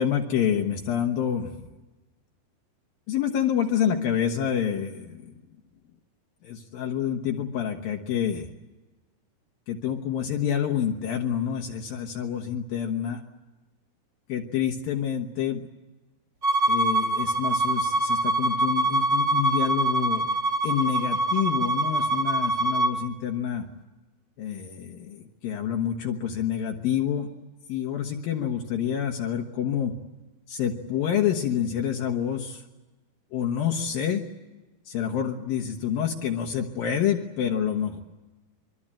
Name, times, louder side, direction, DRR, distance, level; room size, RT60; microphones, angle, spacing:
voice 1, 0.0-1.5 3.1-5.3 6.4-8.5 9.7-13.2 14.3-15.7 16.7-20.3 20.6-23.7 24.4-27.3 27.7-29.9 30.5-32.6 33.3-34.2 34.9-38.0, left 9 dB, 65° left, 3 dB, 2.9 m, -27 dB
Bowed string instrument, 16.4-22.9, right 2 dB, 20° right, 2.5 m, -24 dB
24.5 x 24.0 x 9.0 m, 1.1 s
omnidirectional pair, 4.7 m